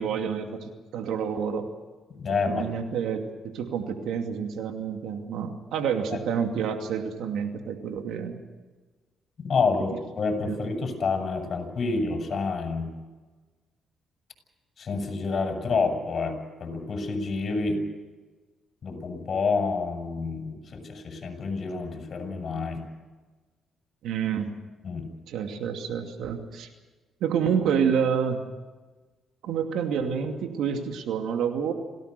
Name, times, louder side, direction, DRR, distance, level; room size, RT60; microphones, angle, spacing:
voice 1, 0.0-1.7 2.5-8.3 10.4-10.6 24.0-24.5 25.3-26.7 27.2-28.4 29.4-31.7, right 7 dB, 80° right, 5 dB, 2.5 m, -28 dB
voice 2, 2.1-2.7 9.4-12.9 14.8-17.8 18.8-22.8 24.8-25.1, left 4 dB, 45° left, 3 dB, 7.8 m, -28 dB
27.5 x 18.0 x 6.8 m, 1.3 s
cardioid pair, 90°, 0 cm